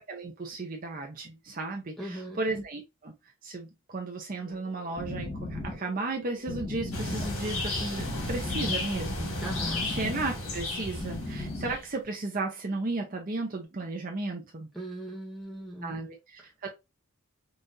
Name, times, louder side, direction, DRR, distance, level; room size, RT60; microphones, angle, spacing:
voice 1, 0.0-3.1 3.4-9.3 9.9-14.7 15.8-16.7, right 2 dB, 40° right, 0.6 m, -34 dB
voice 2, 2.0-2.4 9.4-9.9 14.7-16.1, right 1 dB, ahead, 1.3 m, -38 dB
sound 1, 4.4-11.8, left 2 dB, 25° left, 1.3 m, -38 dB
sound 2, 6.9-11.9, left 2 dB, 85° left, 1.7 m, -33 dB
5.4 x 2.5 x 2.6 m
head